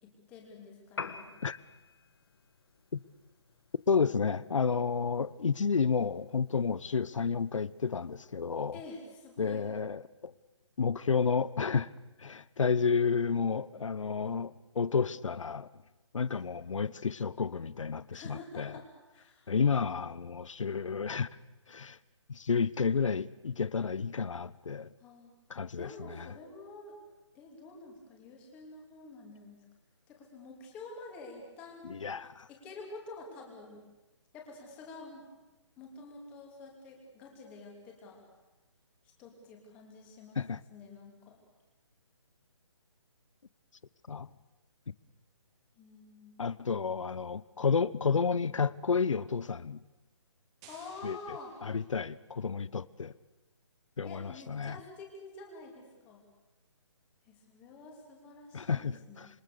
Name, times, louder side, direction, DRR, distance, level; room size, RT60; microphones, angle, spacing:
voice 1, 0.0-1.3 8.7-9.7 16.3-16.4 18.1-19.8 25.0-25.3 25.8-27.0 27.3-29.6 30.1-32.0 32.5-33.8 34.3-35.2 35.8-38.2 39.2-40.4 40.7-41.4 45.8-46.3 50.7-51.6 54.0-56.2 57.3-59.3, left 3 dB, 10° left, 1 dB, 2.7 m, -48 dB
Piano, 0.9-8.9, left 5 dB, 50° left, 1.8 m, -50 dB
voice 2, 3.9-8.8 9.4-10.3 10.8-11.9 12.2-15.7 16.1-18.7 19.5-21.3 21.7-22.0 22.3-24.9 25.5-26.3 31.8-32.5 40.4-40.6 44.1-44.3 46.4-49.8 51.0-53.1 54.0-54.8 58.5-59.3, left 5 dB, 85° left, 18 dB, 0.9 m, -31 dB
sound 1, 50.6-52.4, right 6 dB, 10° right, 1.1 m, -58 dB
27.0 x 25.0 x 6.8 m, 1.1 s
hypercardioid pair, 180°, 16 cm